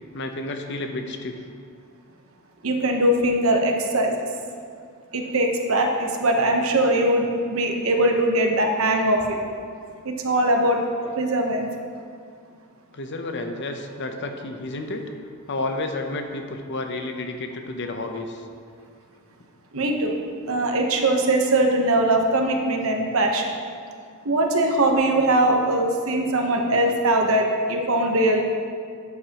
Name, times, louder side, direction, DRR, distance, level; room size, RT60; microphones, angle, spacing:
voice 1, 0.1-1.4 12.9-15.1 15.5-18.4, left 2 dB, 55° left, 5 dB, 0.8 m, -31 dB
voice 2, 2.6-4.2 5.1-9.4 10.0-10.8 11.2-11.7 19.7-20.1 20.5-23.5 24.2-28.4, right 1 dB, 65° right, 2 dB, 1.0 m, -21 dB
11.5 x 8.1 x 3.0 m, 2.2 s
head